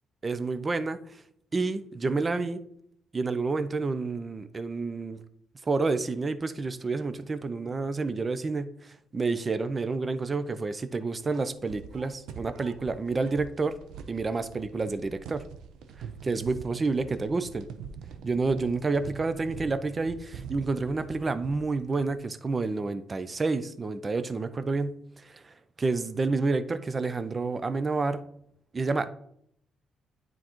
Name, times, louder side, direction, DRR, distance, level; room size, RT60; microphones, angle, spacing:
voice 1, 0.2-1.0 1.5-2.6 3.1-5.2 5.7-13.8 14.1-15.4 16.2-17.7 18.2-28.3 28.7-29.1, right 3 dB, 30° right, 12 dB, 0.5 m, -29 dB
sound 1, 11.2-22.2, right 6 dB, 85° right, 0.5 m, -44 dB
9.2 x 3.8 x 3.0 m, 0.69 s
cardioid pair, 90°, 0 cm